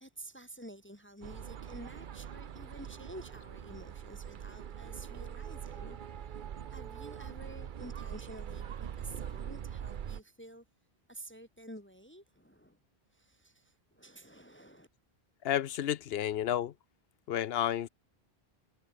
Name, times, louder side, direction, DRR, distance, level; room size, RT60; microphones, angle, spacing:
voice 1, 0.0-6.0 6.3-6.4 6.7-10.6 11.1-12.8 13.1-14.9, right 1 dB, 10° left, 1.3 m, -50 dB
sound 1, 1.2-10.2, right 8 dB, 55° right, 0.8 m, -43 dB
voice 2, 15.4-16.7 17.3-17.9, left 11 dB, 70° left, 0.9 m, -31 dB
omnidirectional pair, 1.1 m